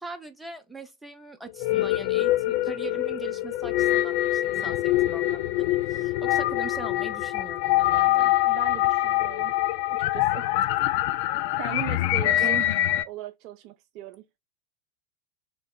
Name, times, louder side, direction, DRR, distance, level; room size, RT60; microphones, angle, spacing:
voice 1, 0.0-8.4 12.4-12.7, right 3 dB, ahead, 0.7 m, -40 dB
sound 1, 1.5-13.0, left 15 dB, 50° left, 0.3 m, -24 dB
voice 2, 8.4-9.5 9.9-10.5 11.6-12.6 13.0-14.2, right 12 dB, 40° right, 0.3 m, -39 dB
3.1 x 2.9 x 3.7 m
figure-of-eight pair, 90°, 0 cm